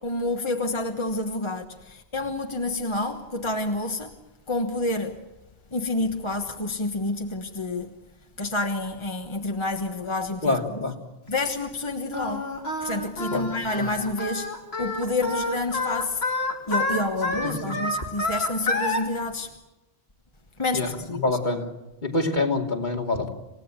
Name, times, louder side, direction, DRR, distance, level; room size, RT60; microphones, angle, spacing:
voice 1, 0.0-4.1 4.5-5.2 5.7-7.9 8.4-10.8 11.3-12.5 12.8-14.5 14.8-16.2 16.7-19.5 20.6-21.2, left 2 dB, 30° left, 1.3 m, -28 dB
voice 2, 10.4-10.9 13.3-13.5 13.8-13.9 17.4-17.8 20.7-21.7 22.0-23.3, left 2 dB, 50° left, 2.7 m, -26 dB
Singing, 12.1-19.0, left 2 dB, 75° left, 3.4 m, -28 dB
28.0 x 16.5 x 8.8 m
omnidirectional pair, 1.1 m